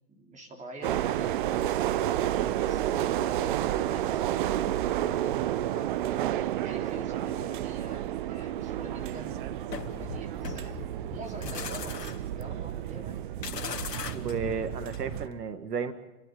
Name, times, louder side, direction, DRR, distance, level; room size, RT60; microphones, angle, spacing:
voice 1, 0.2-1.7 2.2-5.9 6.6-10.7 11.1-13.2 13.5-13.9, right 1 dB, 15° right, 2 dB, 3.7 m, -45 dB
sound 1, 0.8-15.3, right 12 dB, 35° right, 0.7 m, -31 dB
sound 2, 9.7-15.4, left 7 dB, 90° left, 2.0 m, -39 dB
voice 2, 14.1-15.9, right 6 dB, 80° right, 9 dB, 1.9 m, -33 dB
30.0 x 12.0 x 9.3 m, 1.0 s
hypercardioid pair, 135°, 47 cm